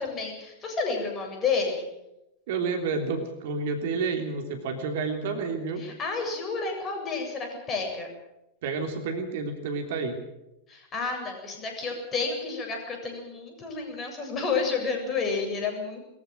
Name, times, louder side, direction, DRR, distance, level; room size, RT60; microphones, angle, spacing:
voice 1, 0.0-1.9 5.8-8.1 10.7-16.0, left 4 dB, 25° left, 2 dB, 7.7 m, -30 dB
voice 2, 2.5-5.8 8.6-10.1, right 4 dB, 55° right, 5 dB, 3.2 m, -30 dB
22.5 x 15.0 x 9.1 m, 0.91 s
figure-of-eight pair, 90°, 0 cm